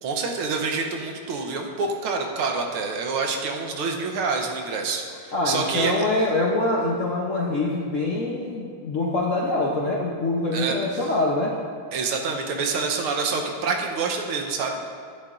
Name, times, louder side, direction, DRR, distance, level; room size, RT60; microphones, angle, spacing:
voice 1, 0.0-5.9 10.5-11.1 11.9-14.8, right 4 dB, 85° right, 2 dB, 1.8 m, -27 dB
voice 2, 5.3-11.6, left 2 dB, 60° left, -3 dB, 0.8 m, -24 dB
12.0 x 9.8 x 2.5 m, 2.3 s
omnidirectional pair, 2.4 m